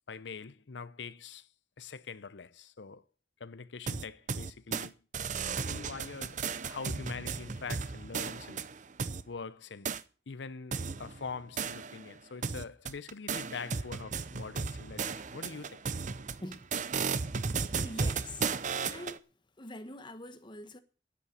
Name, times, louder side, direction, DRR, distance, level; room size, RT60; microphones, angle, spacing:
voice 1, 0.1-1.5 1.8-3.0 3.4-4.9 5.5-8.6 9.3-9.9 10.3-15.9, left 5 dB, 75° left, 0.7 m, -44 dB
sound 1, 3.9-4.9 5.1-9.2 9.8-10.0 10.7-12.1 12.4-19.2, right 5 dB, 45° right, 0.6 m, -35 dB
voice 2, 16.4-16.7 17.8-18.5 18.8-19.2 19.6-20.8, left 1 dB, 25° left, 1.3 m, -44 dB
10.0 x 8.4 x 8.9 m
head